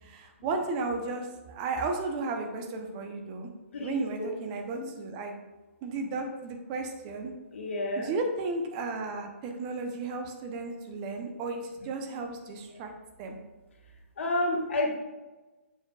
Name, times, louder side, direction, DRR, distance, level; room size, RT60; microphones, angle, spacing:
voice 1, 0.0-3.5 3.8-5.3 5.8-7.3 8.0-12.9 13.2-13.4, right 3 dB, 30° right, 4 dB, 0.8 m, -34 dB
voice 2, 3.7-4.3 4.7-4.8 7.5-8.1 14.2-14.9, left 1 dB, 60° left, 0 dB, 1.6 m, -30 dB
7.1 x 6.5 x 2.4 m, 1.2 s
figure-of-eight pair, 130°, 7 cm